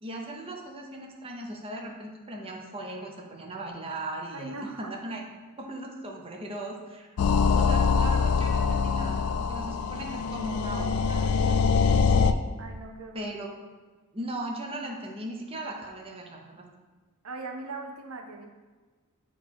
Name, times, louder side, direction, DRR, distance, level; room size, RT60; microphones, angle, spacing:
voice 1, 0.0-5.2 5.6-7.2 7.5-12.4 13.1-13.5 14.1-16.6, right 1 dB, 25° right, 0 dB, 0.7 m, -38 dB
voice 2, 4.3-4.9 12.6-13.3 17.2-18.5, right 3 dB, 80° right, 3 dB, 0.7 m, -39 dB
sound 1, 7.2-12.3, left 5 dB, 75° left, 0.3 m, -24 dB
8.1 x 3.0 x 4.3 m, 1.3 s
head